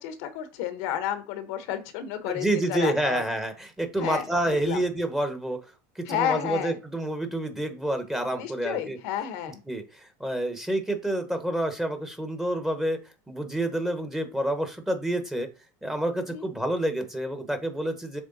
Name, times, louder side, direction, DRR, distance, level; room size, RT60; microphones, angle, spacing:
voice 1, 0.0-3.2 4.0-4.8 6.1-6.8 8.3-9.6 16.3-16.5, left 10 dB, 70° left, 10 dB, 1.0 m, -31 dB
voice 2, 2.3-5.6 6.0-9.0 9.7-13.0 13.3-15.5 15.8-18.2, right 1 dB, 5° right, 7 dB, 1.1 m, -28 dB
7.3 x 3.4 x 4.0 m, 0.31 s
supercardioid pair, 130°, 9 cm